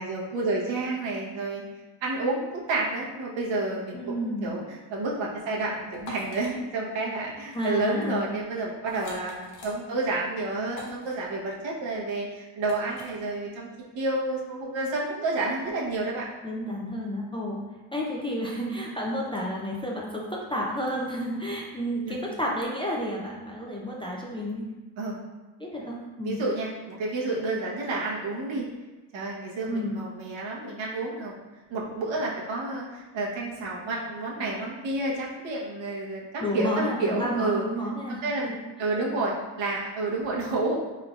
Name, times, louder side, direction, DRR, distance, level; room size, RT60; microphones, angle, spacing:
voice 1, 0.0-1.6 2.0-2.4 2.7-13.7 13.9-16.3 22.1-22.2 25.0-25.1 26.2-28.7 29.1-31.4 31.7-36.7 37.0-37.7 38.2-40.8, right 2 dB, 65° right, -3 dB, 1.0 m, -30 dB
voice 2, 3.9-4.5 7.5-8.3 16.4-17.6 17.9-24.7 25.6-26.4 29.7-30.0 36.4-38.2, equal, 10° left, -4 dB, 0.5 m, -31 dB
sound 1, 5.9-6.5 7.4-7.7 8.0-8.2 8.9-9.7 10.7-11.1 12.6-13.1, left 3 dB, 90° left, 1.0 m, -43 dB
3.7 x 3.3 x 2.4 m, 1.2 s
supercardioid pair, 70°, 48 cm